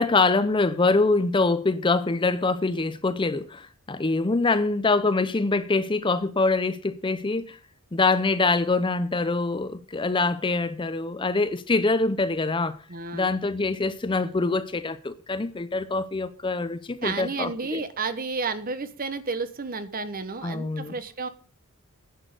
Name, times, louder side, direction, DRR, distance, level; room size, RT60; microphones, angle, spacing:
voice 1, 0.0-7.6 7.9-12.8 13.1-17.8 20.4-20.9, left 3 dB, 20° left, 0.5 m, -24 dB
voice 2, 12.9-13.3 17.0-21.3, right 4 dB, 40° right, 1.1 m, -31 dB
10.5 x 6.3 x 7.8 m
head